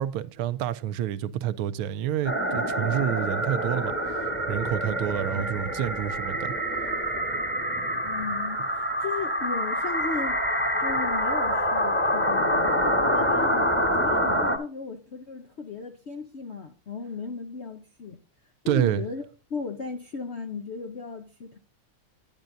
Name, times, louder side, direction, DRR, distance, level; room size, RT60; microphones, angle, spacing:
voice 1, 0.0-3.9 4.5-6.5 18.7-19.0, right 11 dB, 85° right, 1.5 m, -28 dB
sound 1, 2.2-14.6, equal, 10° left, 1.0 m, -26 dB
voice 2, 5.2-5.6 8.0-10.4 10.8-13.6 13.9-18.2 18.6-19.2 19.5-21.6, left 4 dB, 85° left, 0.5 m, -36 dB
10.5 x 10.0 x 2.6 m
omnidirectional pair, 2.3 m